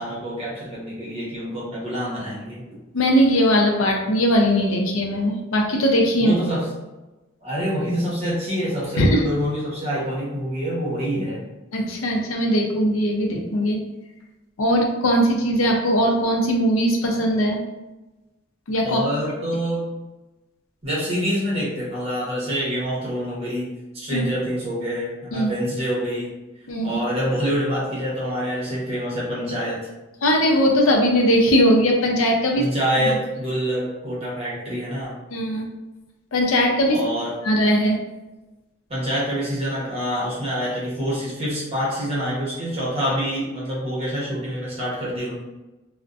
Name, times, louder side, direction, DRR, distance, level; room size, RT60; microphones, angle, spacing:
voice 1, 0.0-2.8 6.2-6.7 7.4-11.5 18.8-19.9 20.8-26.3 26.8-29.9 32.5-35.1 36.9-37.4 38.9-45.3, equal, 30° right, -6 dB, 0.8 m, -26 dB
voice 2, 2.9-6.3 9.0-9.2 11.7-13.8 14.6-17.6 18.7-19.0 24.1-24.2 25.3-25.5 26.7-27.0 30.2-32.7 33.0-33.1 35.3-35.7 36.3-37.0 37.4-38.0, equal, 85° left, 1 dB, 0.5 m, -19 dB
2.5 x 2.1 x 2.4 m, 1.1 s
head